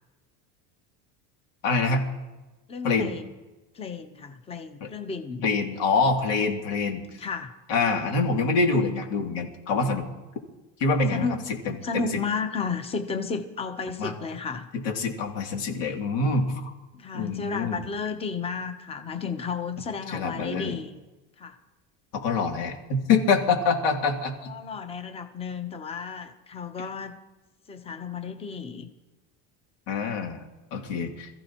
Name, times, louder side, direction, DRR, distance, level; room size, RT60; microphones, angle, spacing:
voice 1, 1.6-2.1 2.8-3.1 4.8-4.9 5.4-7.0 7.7-10.1 10.8-12.2 14.0-14.1 14.7-16.7 17.1-17.8 20.1-20.8 22.1-24.5 29.9-30.4 30.7-31.3, left 4 dB, 90° left, 1 dB, 2.8 m, -25 dB
voice 2, 2.7-3.2 3.7-5.4 7.2-7.6 11.1-11.5 11.8-14.7 16.9-21.0 21.4-21.6 24.5-27.2 27.7-28.9, left 5 dB, 15° left, 7 dB, 0.8 m, -33 dB
26.5 x 15.0 x 3.0 m, 1.1 s
cardioid pair, 165°, 36 cm